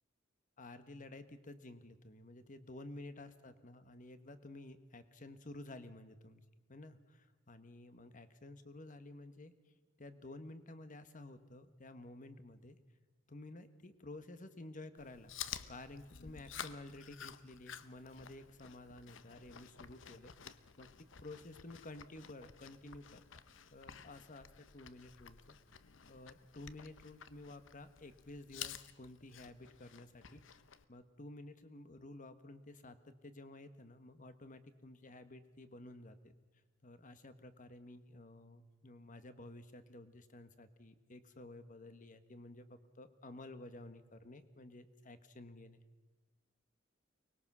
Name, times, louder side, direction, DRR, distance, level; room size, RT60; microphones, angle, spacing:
voice 1, 0.6-6.4 6.7-9.5 10.0-12.8 13.3-20.9 21.2-25.6 26.1-30.6 30.9-36.4 36.8-45.8, left 2 dB, 45° left, 11 dB, 1.4 m, -52 dB
Chewing mastication, 15.0-30.8, left 9 dB, 75° left, 0.9 m, -52 dB
24.0 x 20.5 x 6.2 m, 1.2 s
head